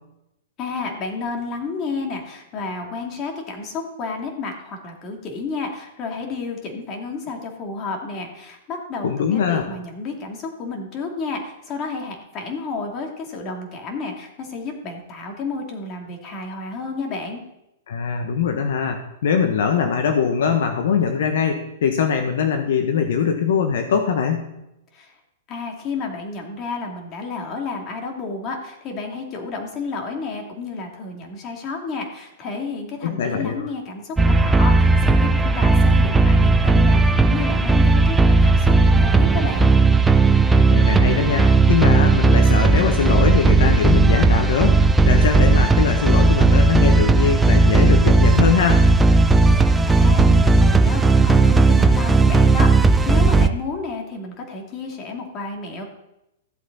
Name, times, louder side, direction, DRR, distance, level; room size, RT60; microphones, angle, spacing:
voice 1, 0.6-17.4 24.9-25.1 25.5-39.7 49.3-49.5 49.8-55.8, left 4 dB, 35° left, 1 dB, 2.7 m, -31 dB
voice 2, 9.0-9.6 17.9-24.5 33.0-33.7 40.6-48.8, left 7 dB, 70° left, 5 dB, 1.2 m, -22 dB
sound 1, 34.2-53.5, right 3 dB, 10° right, 0.6 m, -15 dB
14.0 x 7.9 x 4.1 m, 0.87 s
hypercardioid pair, 125°, 0 cm